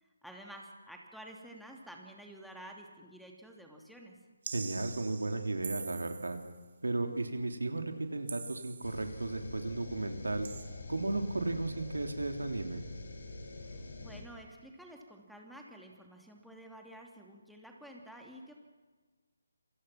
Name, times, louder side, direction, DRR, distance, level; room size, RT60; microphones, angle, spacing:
voice 1, 0.0-4.2 13.6-18.5, right 1 dB, ahead, -1 dB, 2.8 m, -51 dB
sound 1, 4.4-6.6 8.3-9.2 10.4-10.6, right 5 dB, 50° right, 4.0 m, -44 dB
voice 2, 4.5-6.4 6.8-10.5 10.9-12.9, right 2 dB, 75° right, 5 dB, 3.4 m, -34 dB
sound 2, 8.8-14.2, left 2 dB, 70° left, 7.2 m, -45 dB
27.5 x 25.0 x 6.0 m, 1.4 s
figure-of-eight pair, 150°, 0 cm